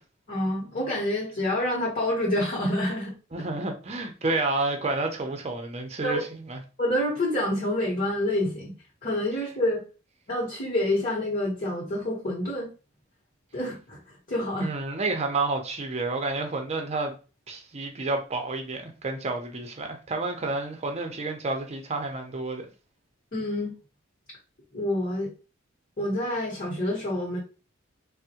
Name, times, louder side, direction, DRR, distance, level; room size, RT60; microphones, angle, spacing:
voice 1, 0.3-3.4 6.0-6.2 6.8-8.7 9.0-9.8 10.3-12.7 13.5-14.0 14.3-14.7 23.3-23.7 24.7-25.3 26.0-27.4, left 1 dB, 45° left, 0.9 m, -27 dB
voice 2, 3.3-6.6 14.6-17.1 17.5-22.7, right 3 dB, 35° right, 0.6 m, -30 dB
3.4 x 2.1 x 2.8 m
head